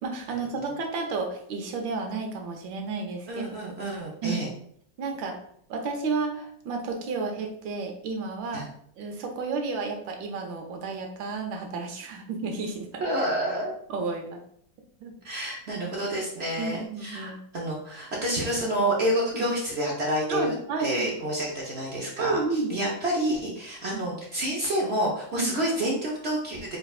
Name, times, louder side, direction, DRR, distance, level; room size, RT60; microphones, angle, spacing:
voice 1, 0.0-3.5 4.2-4.4 5.0-5.4 5.7-8.7 9.0-13.0 13.9-14.4 15.0-15.1 16.6-17.4 19.3-19.5 20.3-21.2 22.2-22.7 23.9-24.0 25.4-25.5, right 4 dB, 85° right, 3 dB, 1.5 m, -31 dB
voice 2, 3.3-4.5 8.5-8.7 13.0-13.7 15.2-20.5 20.8-26.8, right 1 dB, 55° right, -3 dB, 0.7 m, -28 dB
4.6 x 3.3 x 2.3 m, 0.65 s
omnidirectional pair, 2.0 m